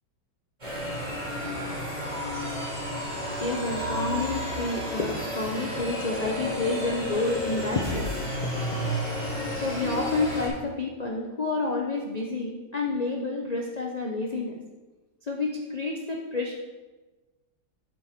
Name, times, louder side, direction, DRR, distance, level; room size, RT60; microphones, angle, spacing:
sound 1, 0.6-10.5, equal, 20° right, 3.3 m, -32 dB
voice 1, 3.4-8.2 8.7-8.8 9.5-14.6 15.3-16.5, left 3 dB, 80° left, 0 dB, 0.3 m, -29 dB
sound 2, 7.8-9.1, left 2 dB, 5° right, 1.9 m, -37 dB
8.8 x 7.3 x 4.3 m, 1.2 s
omnidirectional pair, 2.0 m